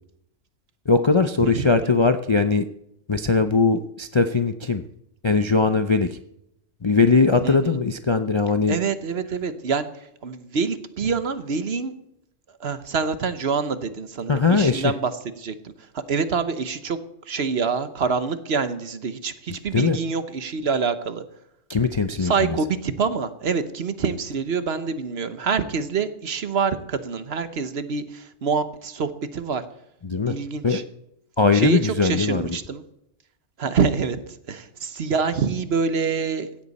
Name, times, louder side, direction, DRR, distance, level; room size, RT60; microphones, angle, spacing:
voice 1, 0.9-2.6 3.1-4.8 5.2-6.2 6.8-8.8 14.3-14.9 19.7-20.0 21.7-22.6 30.0-30.4 30.6-30.8 31.4-32.4, left 4 dB, 35° left, 8 dB, 0.4 m, -20 dB
voice 2, 1.4-1.9 7.4-7.8 8.7-9.9 10.2-11.9 12.6-15.7 16.1-17.0 17.3-21.2 22.2-29.6 30.3-30.8 31.5-32.8 33.6-34.2 34.5-36.5, right 5 dB, 55° right, 12 dB, 1.2 m, -26 dB
16.5 x 13.5 x 4.2 m, 0.78 s
omnidirectional pair, 1.3 m